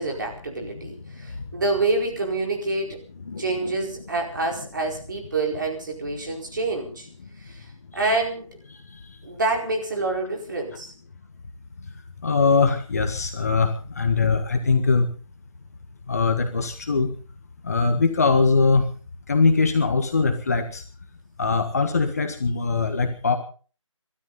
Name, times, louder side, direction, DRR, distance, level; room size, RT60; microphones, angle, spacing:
voice 1, 0.0-3.0 3.4-7.1 7.4-7.7 7.9-8.5 9.2-10.9, right 2 dB, 35° right, 1 dB, 4.7 m, -27 dB
voice 2, 3.3-3.8 8.1-8.2 8.9-9.0 12.2-15.1 16.1-17.1 17.6-18.9 19.3-20.8 21.4-23.4, left 4 dB, 30° left, 5 dB, 1.6 m, -21 dB
26.0 x 13.0 x 4.1 m, 0.39 s
figure-of-eight pair, 170°, 17 cm